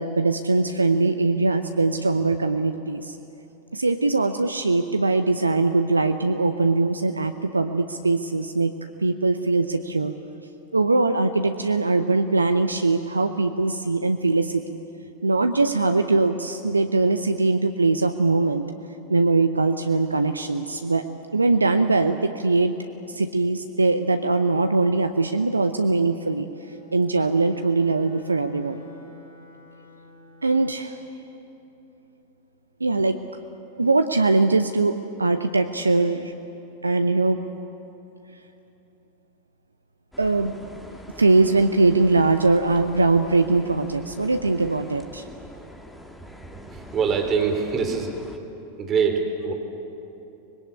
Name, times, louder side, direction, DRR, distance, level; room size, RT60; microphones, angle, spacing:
voice 1, 0.0-3.2 3.7-8.7 9.0-10.1 10.7-14.6 15.2-18.7 19.1-21.1 21.3-22.7 23.1-26.5 26.9-28.8 30.4-31.0 32.8-33.2 33.8-36.3 36.8-37.4 40.2-40.5 41.2-45.2, right 3 dB, 80° right, 8 dB, 0.7 m, -21 dB
Bowed string instrument, 26.5-31.0, left 3 dB, 65° left, 7.1 m, -49 dB
sound 1, 40.1-48.4, left 1 dB, 5° left, 1.9 m, -44 dB
voice 2, 46.5-48.1 48.8-49.5, right 5 dB, 25° right, 3 dB, 3.8 m, -24 dB
25.0 x 21.0 x 8.5 m, 3.0 s
figure-of-eight pair, 90°, 0 cm